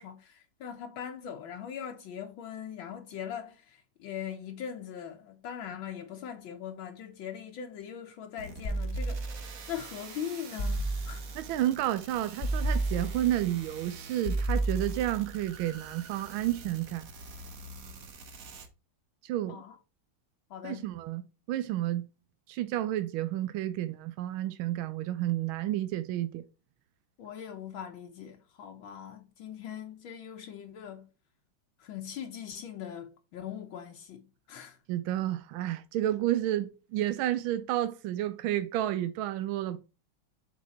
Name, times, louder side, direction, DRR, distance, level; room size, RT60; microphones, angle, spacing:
voice 1, 0.0-9.3 9.7-11.2 19.5-19.8 20.5-20.9 27.2-31.1 31.8-34.8, left 9 dB, 75° left, 1.6 m, -41 dB
sound 1, 8.4-18.7, right 4 dB, 50° right, 1.3 m, -47 dB
sound 2, 8.6-9.7 10.6-11.5 12.4-13.5 14.2-15.3, right 2 dB, 40° left, 1.3 m, -31 dB
voice 2, 11.3-17.1 19.2-19.6 20.6-22.1 22.5-26.4 34.9-39.8, right 13 dB, 80° right, 1.4 m, -31 dB
7.3 x 4.2 x 4.1 m
omnidirectional pair, 2.2 m